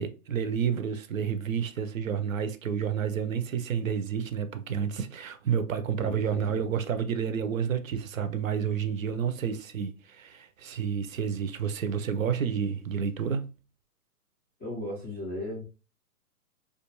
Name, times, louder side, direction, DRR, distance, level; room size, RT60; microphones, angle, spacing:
voice 1, 0.0-13.5, right 7 dB, 60° right, 0.5 m, -30 dB
voice 2, 6.0-6.6 14.6-15.7, left 1 dB, 10° left, 0.4 m, -36 dB
2.3 x 2.3 x 2.9 m
hypercardioid pair, 140°, 46 cm